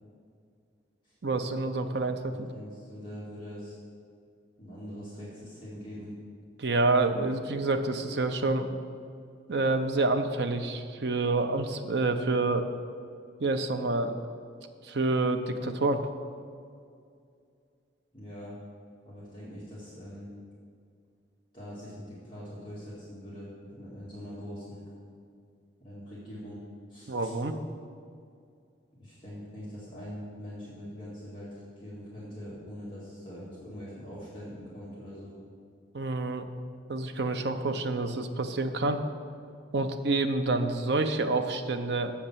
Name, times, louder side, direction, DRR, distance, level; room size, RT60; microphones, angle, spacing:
voice 1, 1.2-2.5 6.6-8.7 9.5-12.7 13.4-14.3 14.8-16.0 27.1-27.5 35.9-36.5 36.9-39.0 39.7-42.1, right 2 dB, 60° right, 6 dB, 0.6 m, -28 dB
voice 2, 2.3-3.7 4.6-6.2 18.1-18.6 19.1-20.3 21.5-24.9 25.8-26.6 26.9-27.3 29.0-35.4, equal, 25° left, -9 dB, 2.0 m, -43 dB
7.2 x 6.6 x 7.4 m, 2.3 s
head